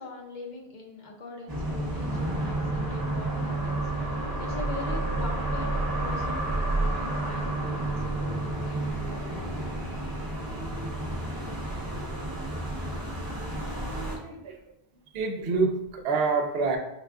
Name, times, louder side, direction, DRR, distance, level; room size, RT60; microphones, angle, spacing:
voice 1, 0.0-4.1 4.4-9.5, left 2 dB, 50° left, 0 dB, 0.9 m, -42 dB
sound 1, 1.5-14.2, right 2 dB, 25° right, 0.8 m, -30 dB
voice 2, 14.1-14.6 15.1-16.8, right 4 dB, 70° right, 5 dB, 0.8 m, -27 dB
4.9 x 2.3 x 3.5 m, 0.88 s
omnidirectional pair, 1.1 m